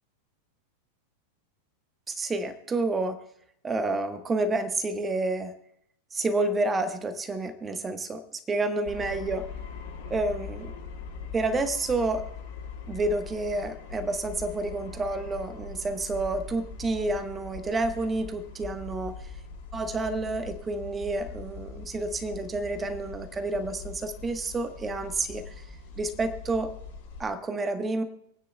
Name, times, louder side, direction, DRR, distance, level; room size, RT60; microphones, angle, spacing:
voice 1, 2.1-3.2 3.6-5.6 6.1-9.5 10.1-10.7 11.2-12.2 12.9-19.3 19.7-25.7 25.9-26.7 27.2-28.0, right 2 dB, 15° right, 9 dB, 1.1 m, -29 dB
sound 1, 8.8-27.3, left 5 dB, 55° left, 2.1 m, -41 dB
27.0 x 9.4 x 2.2 m, 0.74 s
figure-of-eight pair, 90°, 0 cm